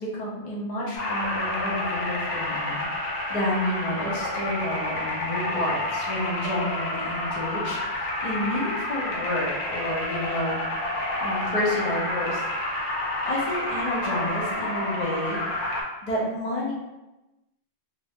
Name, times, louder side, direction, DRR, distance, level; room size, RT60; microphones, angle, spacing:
voice 1, 0.0-12.4 13.2-15.4 16.0-16.7, left 1 dB, 45° left, -4 dB, 0.6 m, -30 dB
sound 1, 1.0-15.8, left 1 dB, 85° left, 1.0 m, -29 dB
2.3 x 2.0 x 3.3 m, 1.0 s
omnidirectional pair, 1.1 m